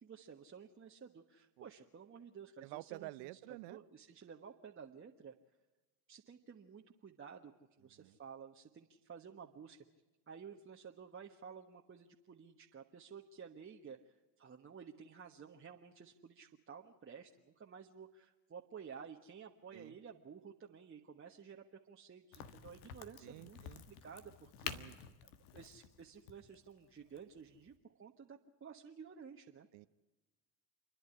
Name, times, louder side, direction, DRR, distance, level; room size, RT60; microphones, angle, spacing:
voice 1, 0.0-3.4 3.7-5.3 6.1-7.5 7.8-9.8 10.3-23.6 23.9-24.7 25.5-29.7, right 6 dB, 25° right, 1 dB, 1.4 m, -53 dB
voice 2, 2.6-3.8 8.0-8.2 19.7-20.0 23.2-23.8 24.7-25.0 29.7-29.9, right 20 dB, 60° right, 18 dB, 0.8 m, -50 dB
Crack, 22.3-27.8, left 9 dB, 70° left, 1.6 m, -50 dB
29.0 x 11.0 x 9.8 m, 1.2 s
hypercardioid pair, 80°, 48 cm